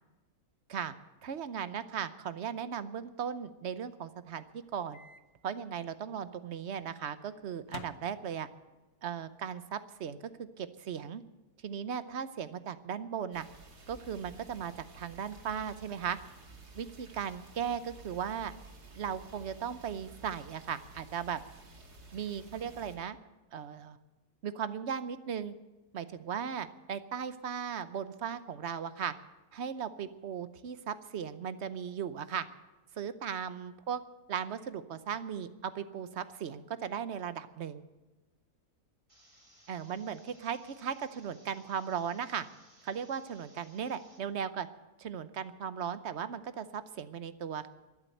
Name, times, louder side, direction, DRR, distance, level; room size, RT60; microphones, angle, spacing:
voice 1, 1.2-5.0 5.4-8.5 9.0-11.2 11.6-13.5 13.9-16.2 16.7-18.5 19.0-21.4 22.1-23.2 23.5-24.0 24.4-25.5 25.9-29.1 29.5-32.4 33.0-34.0 34.3-37.8 39.7-42.5 42.8-44.7 45.0-47.7, right 8 dB, 55° right, 13 dB, 0.9 m, -37 dB
Microwave oven, 4.9-5.2 5.6-5.7 7.6-8.7, left 6 dB, 70° left, 1.3 m, -49 dB
sound 1, 13.3-23.0, right 3 dB, 85° right, 2.8 m, -53 dB
sound 2, 39.1-44.2, right 1 dB, 20° right, 3.4 m, -62 dB
13.0 x 11.0 x 9.0 m, 1.1 s
omnidirectional pair, 1.6 m